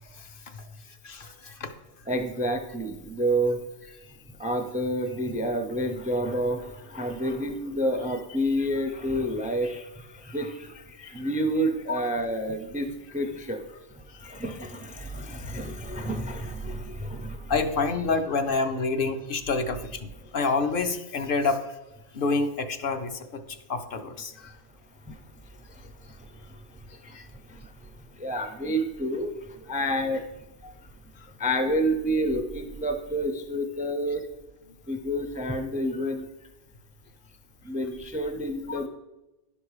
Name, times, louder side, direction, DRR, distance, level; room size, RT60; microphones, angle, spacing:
voice 1, 0.1-0.6 1.0-1.7 11.0-11.1 11.9-12.0 14.1-14.3 17.5-21.7 22.1-23.4 23.7-24.5 27.1-27.3 30.6-30.7 38.7-38.9, left 4 dB, 55° left, 7 dB, 0.8 m, -28 dB
voice 2, 2.1-4.0 4.3-17.5 25.0-30.4 30.8-30.9 31.4-34.2 34.9-36.3 37.6-38.9, equal, 10° right, 7 dB, 0.3 m, -30 dB
10.5 x 5.2 x 4.8 m, 1.0 s
omnidirectional pair, 1.2 m